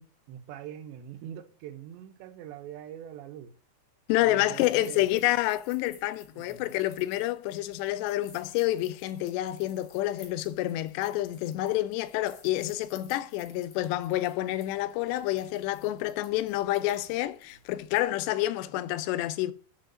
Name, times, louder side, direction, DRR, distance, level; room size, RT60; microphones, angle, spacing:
voice 1, 0.0-3.5 4.2-5.1 6.3-6.7, right 10 dB, 85° right, 3.3 m, -43 dB
voice 2, 4.1-19.5, left 15 dB, 85° left, 2.7 m, -28 dB
sound 1, 4.5-18.0, left 5 dB, 60° left, 3.7 m, -57 dB
10.0 x 5.0 x 6.1 m
omnidirectional pair, 4.9 m